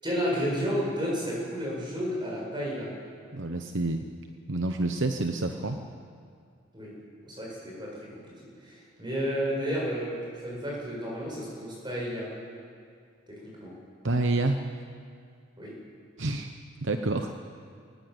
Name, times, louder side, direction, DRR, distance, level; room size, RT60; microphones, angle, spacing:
voice 1, 0.0-2.9 6.7-6.9 7.3-8.0 8.6-12.3 13.3-13.7 15.6-15.7, equal, 25° right, -4 dB, 8.0 m, -31 dB
voice 2, 3.3-4.1 4.5-5.8 14.0-14.6 16.2-16.5 16.8-17.3, right 2 dB, 65° right, 6 dB, 1.0 m, -28 dB
21.5 x 19.5 x 8.2 m, 2.3 s
head